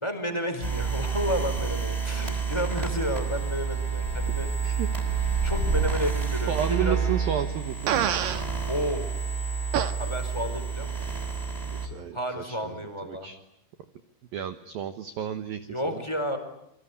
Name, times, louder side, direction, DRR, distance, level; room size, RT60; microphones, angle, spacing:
voice 1, 0.0-4.5 5.4-7.0 8.7-9.1 10.0-11.1 12.1-13.3 15.6-16.4, equal, 5° left, 7 dB, 3.7 m, -31 dB
sound 1, 0.6-11.9, right 5 dB, 10° right, 5.8 m, -29 dB
voice 2, 6.5-8.0 11.6-12.6 13.0-13.4 14.3-16.1, right 10 dB, 80° right, 9 dB, 2.1 m, -32 dB
Fart, 7.9-8.4 9.7-9.9, right 9 dB, 65° right, 2.4 m, -25 dB
28.0 x 24.5 x 8.4 m, 0.78 s
omnidirectional pair, 5.9 m